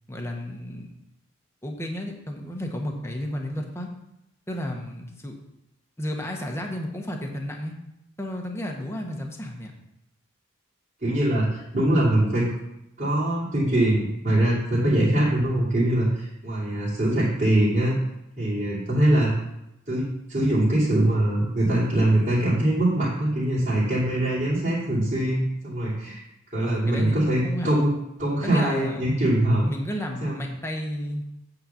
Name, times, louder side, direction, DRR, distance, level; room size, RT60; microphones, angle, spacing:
voice 1, 0.1-0.9 1.6-3.9 4.5-5.3 6.0-7.7 8.2-9.7 26.6-27.7 28.4-29.1 29.7-31.2, left 1 dB, 10° left, 1 dB, 1.0 m, -32 dB
voice 2, 11.0-12.5 13.0-18.0 18.4-19.3 19.9-26.2 26.5-27.9 28.2-29.7 30.2-30.4, right 1 dB, 40° right, -10 dB, 2.7 m, -23 dB
8.7 x 3.9 x 7.0 m, 0.85 s
head